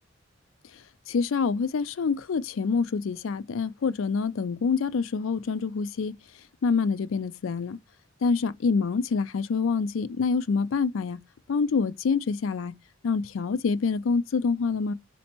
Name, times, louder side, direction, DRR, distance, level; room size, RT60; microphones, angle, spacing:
voice 1, 1.1-6.2 6.6-7.8 8.2-11.2 11.5-12.7 13.0-14.9, left 5 dB, 80° left, 0.4 m, -26 dB
4.3 x 2.8 x 4.2 m
head